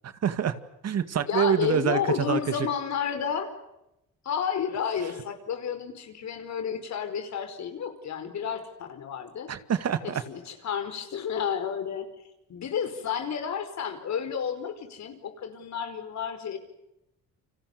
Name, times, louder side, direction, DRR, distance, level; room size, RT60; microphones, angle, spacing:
voice 1, 0.0-0.6 0.8-2.7 9.5-10.2, right 8 dB, 55° right, 11 dB, 2.1 m, -26 dB
voice 2, 1.3-3.5 4.2-9.5 10.0-12.1 12.5-16.6, left 7 dB, 65° left, 8 dB, 5.0 m, -31 dB
30.0 x 25.5 x 6.9 m, 0.88 s
cardioid pair, 90°, 30 cm